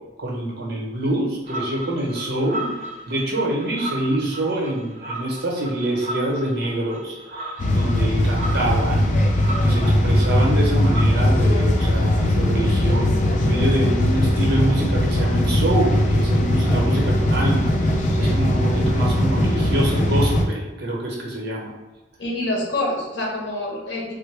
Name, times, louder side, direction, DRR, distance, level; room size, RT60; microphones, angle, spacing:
voice 1, 0.2-2.7 3.1-9.1 9.6-17.7 18.2-21.7, right 1 dB, 60° right, -2 dB, 0.9 m, -25 dB
sound 1, 1.5-11.1, right 1 dB, 40° right, 0.6 m, -35 dB
sound 2, 7.6-20.4, left 1 dB, 40° left, 0.4 m, -19 dB
voice 2, 22.2-24.1, left 1 dB, 70° left, -2 dB, 0.9 m, -26 dB
3.5 x 2.1 x 3.2 m, 1.1 s
head